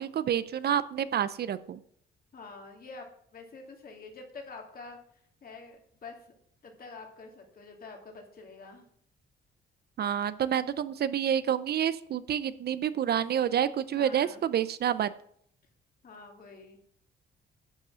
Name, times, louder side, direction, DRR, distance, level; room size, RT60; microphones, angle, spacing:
voice 1, 0.0-1.8 10.0-15.1, right 9 dB, 55° right, 15 dB, 0.5 m, -28 dB
voice 2, 2.3-3.1 3.3-5.0 5.4-6.2 6.6-8.8 13.9-14.4 16.0-16.8, left 4 dB, 50° left, 2 dB, 2.5 m, -47 dB
10.5 x 5.3 x 6.3 m, 0.66 s
cardioid pair, 90°, 20 cm